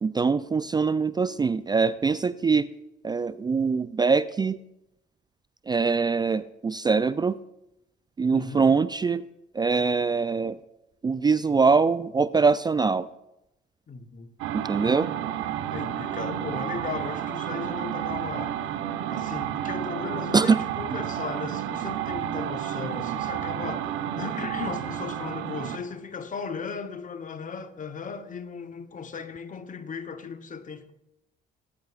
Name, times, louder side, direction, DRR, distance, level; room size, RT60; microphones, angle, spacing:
voice 1, 0.0-2.7 3.0-4.6 5.7-7.4 8.2-9.2 9.5-10.6 11.0-13.1 14.5-15.1 20.3-20.6, right 4 dB, 20° right, 0.3 m, -23 dB
voice 2, 8.3-8.7 13.9-14.3 15.7-18.6 19.1-30.9, left 5 dB, 40° left, 1.0 m, -36 dB
sound 1, 14.4-25.9, right 11 dB, 80° right, 0.8 m, -31 dB
18.5 x 9.1 x 2.5 m
supercardioid pair, 65°, 20 cm